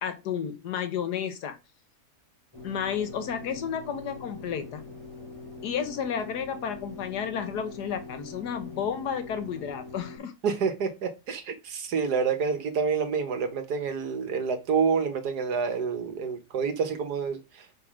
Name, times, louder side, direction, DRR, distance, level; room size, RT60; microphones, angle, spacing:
voice 1, 0.0-1.6 2.6-4.8 5.6-10.3, left 8 dB, 80° left, 1.6 m, -32 dB
sound 1, 2.5-10.2, left 3 dB, 20° left, 3.2 m, -43 dB
voice 2, 10.4-17.7, right 5 dB, 80° right, 1.8 m, -28 dB
6.0 x 4.8 x 5.0 m
omnidirectional pair, 1.7 m